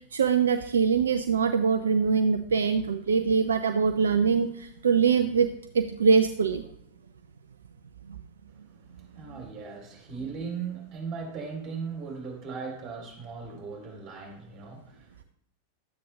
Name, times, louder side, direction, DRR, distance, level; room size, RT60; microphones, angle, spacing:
voice 1, 0.1-5.5 5.7-6.6 8.1-8.2, right 6 dB, 70° right, 0.5 m, -23 dB
voice 2, 8.5-15.2, right 5 dB, 30° right, 3.0 m, -38 dB
11.5 x 8.3 x 3.2 m
figure-of-eight pair, 90°, 0 cm